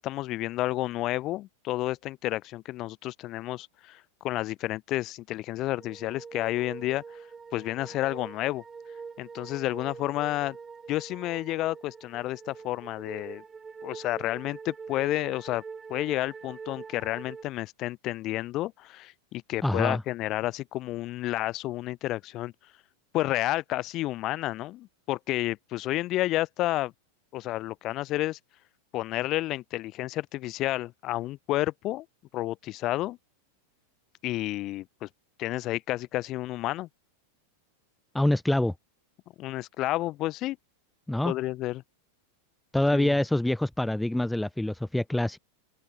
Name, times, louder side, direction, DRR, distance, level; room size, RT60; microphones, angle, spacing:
voice 1, 0.0-7.2 7.5-8.6 9.2-10.6 10.9-13.4 13.8-15.6 15.9-22.5 23.1-26.9 27.3-28.4 28.9-32.0 32.3-33.2 34.2-35.1 35.4-36.9 39.4-40.6 41.2-41.8 42.9-43.1, left 16 dB, 35° left, 0.8 m, -30 dB
sound 1, 5.7-17.4, right 5 dB, 15° right, 3.6 m, -44 dB
voice 2, 19.6-20.0 38.1-38.7 41.1-41.3 42.7-45.4, left 1 dB, 5° left, 0.4 m, -25 dB
figure-of-eight pair, 90°, 0 cm